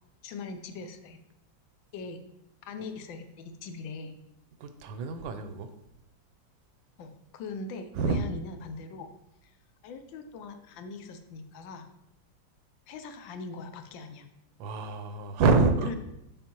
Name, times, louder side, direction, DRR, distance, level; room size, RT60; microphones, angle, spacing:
voice 1, 0.2-1.2 1.9-2.2 2.6-4.1 7.0-9.1 9.4-9.5 9.8-11.9 12.9-14.3 15.8-16.0, left 4 dB, 80° left, 7 dB, 1.4 m, -41 dB
voice 2, 4.6-5.7 7.9-8.2 14.6-15.9, right 4 dB, 80° right, 8 dB, 1.3 m, -26 dB
7.1 x 5.0 x 2.9 m, 0.85 s
omnidirectional pair, 2.1 m